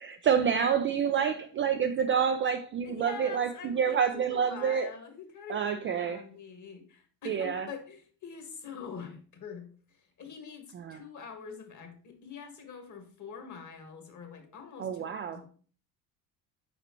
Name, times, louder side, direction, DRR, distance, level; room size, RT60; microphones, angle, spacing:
voice 1, 0.0-4.9 5.5-6.2 7.3-7.7 10.7-11.0 14.8-15.4, right 7 dB, 25° right, 0.4 m, -28 dB
voice 2, 2.8-15.4, left 6 dB, 35° left, 1.6 m, -45 dB
6.9 x 4.9 x 3.0 m
hypercardioid pair, 60°, 50 cm